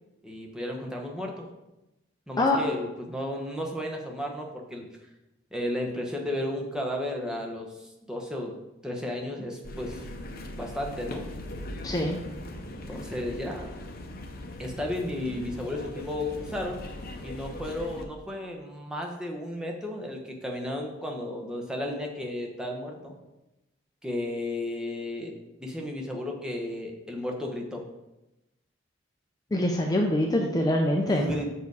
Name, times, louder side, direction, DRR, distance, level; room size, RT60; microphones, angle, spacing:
voice 1, 0.2-1.5 2.3-4.9 5.5-8.5 8.8-10.0 10.6-11.2 12.7-13.7 14.6-16.8 17.2-23.1 24.0-25.3 25.6-27.8 31.0-31.5, left 1 dB, 5° right, 0 dB, 1.0 m, -33 dB
sound 1, 9.6-18.0, left 1 dB, 50° left, 0.8 m, -40 dB
voice 2, 11.8-12.2 29.5-31.3, left 1 dB, 20° left, 1 dB, 0.5 m, -24 dB
6.8 x 4.6 x 4.8 m, 0.97 s
head